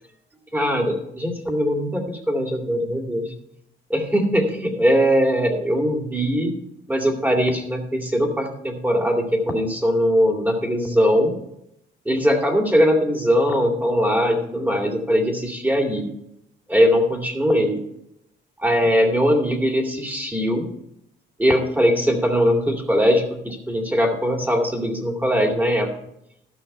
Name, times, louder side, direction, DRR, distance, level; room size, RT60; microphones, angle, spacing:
voice 1, 0.5-3.3 3.9-6.5 6.9-11.3 12.1-16.1 16.7-17.8 18.6-20.7 21.4-25.9, equal, 10° right, 3 dB, 2.3 m, -20 dB
13.0 x 5.8 x 5.4 m, 0.78 s
cardioid pair, 90°, 20 cm